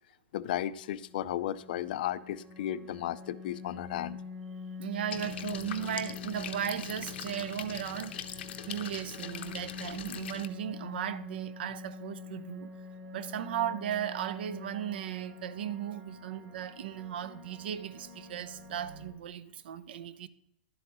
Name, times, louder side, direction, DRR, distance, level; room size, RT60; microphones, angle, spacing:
voice 1, 0.3-4.2 5.4-5.5, left 12 dB, 50° left, 0.4 m, -34 dB
sound 1, 0.6-19.1, left 4 dB, 35° right, 2.0 m, -45 dB
voice 2, 4.8-8.4 8.7-12.7 13.1-20.3, right 10 dB, 65° right, 0.6 m, -36 dB
sound 2, 5.1-10.5, left 9 dB, 75° left, 0.8 m, -42 dB
11.5 x 7.9 x 3.0 m
supercardioid pair, 170°, 6 cm